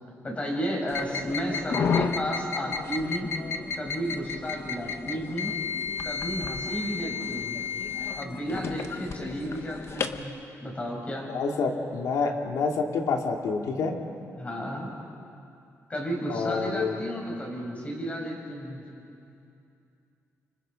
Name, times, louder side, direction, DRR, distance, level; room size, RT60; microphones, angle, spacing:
voice 1, 0.2-3.3 3.8-5.5 6.0-7.6 8.1-10.3 10.6-11.5 14.4-14.9 15.9-18.8, equal, 25° left, 0 dB, 5.3 m, -32 dB
sound 1, 0.9-10.2, left 6 dB, 50° left, 1.0 m, -32 dB
voice 2, 11.3-13.9 16.3-17.0, left 4 dB, 85° left, 2 dB, 2.3 m, -28 dB
29.0 x 25.5 x 5.2 m, 2.7 s
wide cardioid pair, 145°, 6 cm